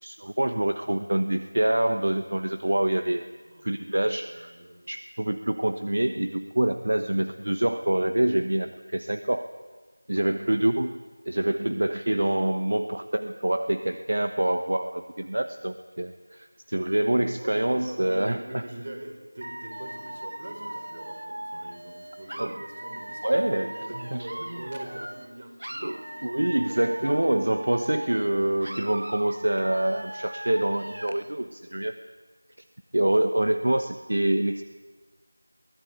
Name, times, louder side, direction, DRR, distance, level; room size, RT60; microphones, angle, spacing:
voice 1, 0.0-3.3 3.6-4.5 4.9-9.5 10.1-10.9 11.3-18.4 22.4-22.5 23.2-23.7 24.1-24.3 25.8-32.0 32.9-34.6, right 1 dB, 55° right, 8 dB, 1.1 m, -26 dB
voice 2, 3.4-4.0 4.3-4.9 10.4-10.6 16.3-16.4 17.4-27.2, right 1 dB, 35° right, 3 dB, 4.7 m, -43 dB
Dog / Alarm, 19.4-25.3 25.6-28.3 28.6-31.3, right 1 dB, 75° right, 1.4 m, -39 dB
23.0 x 17.5 x 8.2 m, 1.4 s
figure-of-eight pair, 175°, 0 cm